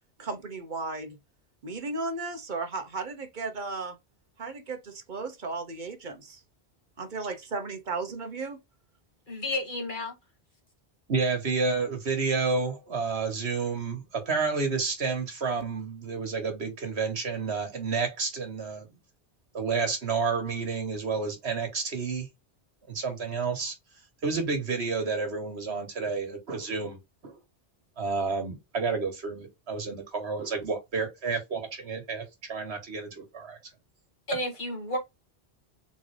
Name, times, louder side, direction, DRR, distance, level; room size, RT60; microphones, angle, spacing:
voice 1, 0.2-1.2 1.6-4.0 4.4-6.4 7.0-8.6, right 3 dB, 50° right, 1.1 m, -35 dB
voice 2, 9.3-10.1 34.3-35.0, left 1 dB, 50° left, 1.6 m, -31 dB
voice 3, 11.1-18.9 19.5-22.3 22.9-23.7 24.2-27.4 28.0-33.6, right 4 dB, 75° right, 1.7 m, -30 dB
3.8 x 3.7 x 3.3 m
omnidirectional pair, 1.1 m